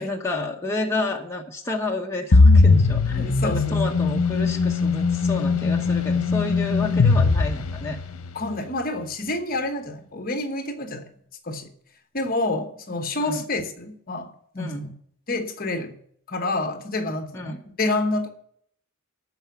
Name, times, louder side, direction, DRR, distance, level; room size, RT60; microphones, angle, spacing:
voice 1, 0.0-8.0 13.2-13.5 14.6-14.9 17.3-17.6, left 2 dB, 10° left, 0.9 m, -30 dB
sound 1, 2.3-8.3, left 3 dB, 80° left, 0.8 m, -19 dB
voice 2, 3.2-3.8 8.3-11.0 11.4-11.7 12.1-14.9 15.3-16.0 16.3-18.3, left 2 dB, 40° left, 1.1 m, -28 dB
12.5 x 4.7 x 8.2 m
head